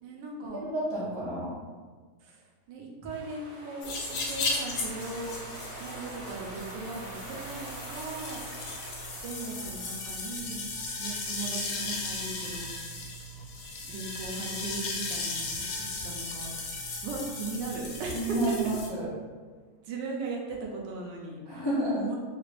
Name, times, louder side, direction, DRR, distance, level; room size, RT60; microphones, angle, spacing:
voice 1, 0.0-0.6 2.2-2.4 2.7-5.4 5.8-8.4 9.2-10.7 11.0-12.9 13.9-18.5 19.8-21.6 22.0-22.2, right 3 dB, 80° right, -1 dB, 1.3 m, -38 dB
voice 2, 0.5-1.6 18.1-19.1 21.4-22.1, right 1 dB, 30° left, -10 dB, 0.5 m, -30 dB
sound 1, 3.1-10.3, right 1 dB, 50° right, 0.9 m, -45 dB
sound 2, 3.8-18.9, left 2 dB, 70° left, 1.2 m, -36 dB
3.7 x 2.5 x 3.2 m, 1.5 s
omnidirectional pair, 1.9 m